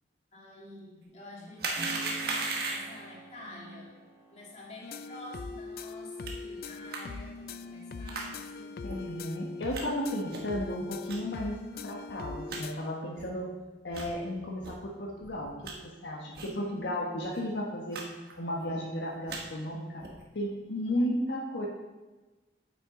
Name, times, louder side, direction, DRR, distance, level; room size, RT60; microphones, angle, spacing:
voice 1, 0.3-4.0 4.3-8.8 16.4-17.1, left 1 dB, 40° left, -5 dB, 2.6 m, -48 dB
sound 1, 1.6-3.0 6.3-6.4 6.9-7.0 8.1-8.3 8.9-9.0 9.7-9.8 10.3-10.6 11.1-11.2 11.7-11.8 12.1-12.2 12.5-12.6 13.2-13.3 13.9-14.1 14.6-14.7 15.2-15.7 16.3-16.6 16.8-16.9 17.2-17.4 17.9-18.0 18.3-18.7 19.1-19.4 20.0-20.2, right 3 dB, 60° right, 1.3 m, -36 dB
Keyboard (musical), 1.7-10.3, right 3 dB, 35° right, 1.8 m, -50 dB
sound 2, 4.8-12.7, left 4 dB, 55° left, 0.4 m, -41 dB
voice 2, 8.8-13.5 13.8-15.5 15.8-18.0 18.4-20.1 20.3-21.7, equal, 85° left, -2 dB, 1.3 m, -34 dB
8.8 x 8.7 x 3.8 m, 1.2 s
head